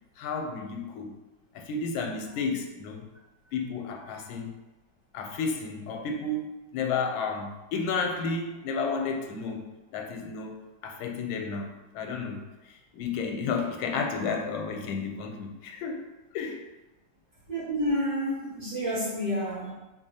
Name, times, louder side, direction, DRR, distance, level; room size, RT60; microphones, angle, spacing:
voice 1, 0.2-1.1 1.5-3.0 3.5-4.6 5.1-9.7 9.9-10.6 10.8-16.0 16.3-16.6, left 4 dB, 90° left, 3 dB, 1.4 m, -32 dB
voice 2, 17.5-19.7, equal, 65° right, -13 dB, 2.1 m, -29 dB
4.0 x 3.3 x 2.7 m, 1.1 s
omnidirectional pair, 2.1 m